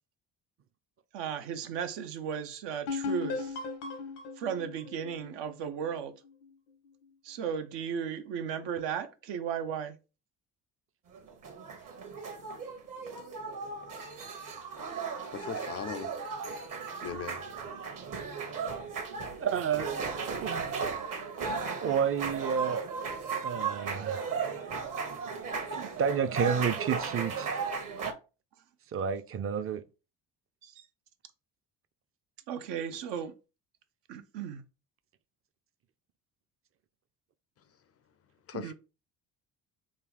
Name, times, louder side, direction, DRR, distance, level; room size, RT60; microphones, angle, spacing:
voice 1, 1.1-3.5 4.4-6.1 7.2-10.0 30.6-30.7 32.5-33.3 34.1-34.6 38.5-38.7, right 7 dB, 75° right, 0.7 m, -35 dB
sound 1, 2.9-6.4, left 4 dB, 85° left, 0.9 m, -37 dB
sound 2, 11.1-28.1, right 5 dB, 45° right, 1.0 m, -36 dB
voice 2, 15.3-16.1 17.0-17.4 38.5-38.7, left 7 dB, 35° left, 0.4 m, -38 dB
voice 3, 19.4-19.9 20.4-20.7 21.8-22.8 23.4-24.3 25.7-27.6 28.9-29.8, right 7 dB, 30° right, 0.5 m, -30 dB
3.8 x 2.3 x 3.3 m
supercardioid pair, 60°, 43 cm